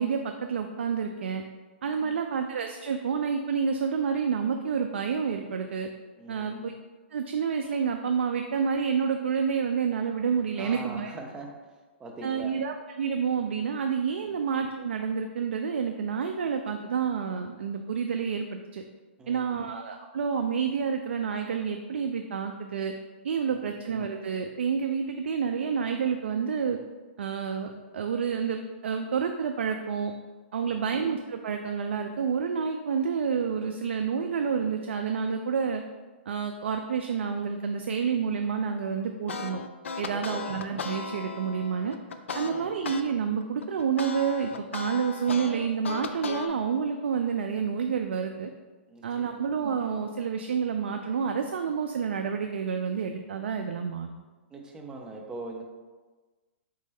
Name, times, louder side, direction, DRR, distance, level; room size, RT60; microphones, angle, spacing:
voice 1, 0.0-1.4 1.8-5.9 6.3-6.7 7.1-11.1 12.2-18.5 18.7-18.8 19.3-22.9 23.2-26.8 27.2-30.1 30.5-35.8 36.3-39.6 40.0-42.0 42.3-48.5 49.0-54.1, right 6 dB, 80° right, 5 dB, 0.3 m, -29 dB
voice 2, 1.8-2.2 6.2-6.7 10.6-11.5 12.0-12.5 14.2-14.4 19.2-19.7 23.5-23.8 30.6-30.9 40.1-40.4 42.4-42.7 48.9-49.4 54.5-55.6, right 2 dB, 15° right, 0 dB, 0.6 m, -42 dB
sound 1, 39.3-43.0 43.4-46.5, left 5 dB, 85° left, 0.4 m, -36 dB
4.1 x 3.2 x 3.5 m, 1.3 s
hypercardioid pair, 135°, 6 cm